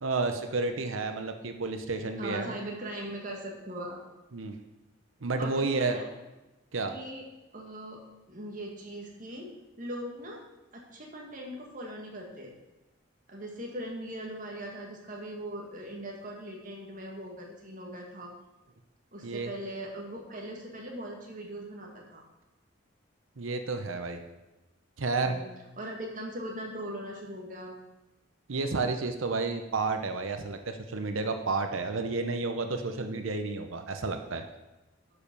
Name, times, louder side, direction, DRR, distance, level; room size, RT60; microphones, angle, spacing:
voice 1, 0.0-2.5 4.3-4.6 5.2-6.0 6.7-6.9 19.2-19.5 23.4-24.2 25.0-25.4 28.5-34.4, right 3 dB, 80° right, 6 dB, 0.8 m, -31 dB
voice 2, 2.2-4.0 5.4-6.1 6.9-7.3 7.5-8.0 8.3-9.5 9.8-10.4 10.7-12.5 13.3-18.3 19.1-22.2 25.2-25.5 25.8-27.8, right 1 dB, 40° right, -1 dB, 1.9 m, -40 dB
11.5 x 5.2 x 5.4 m, 1.0 s
head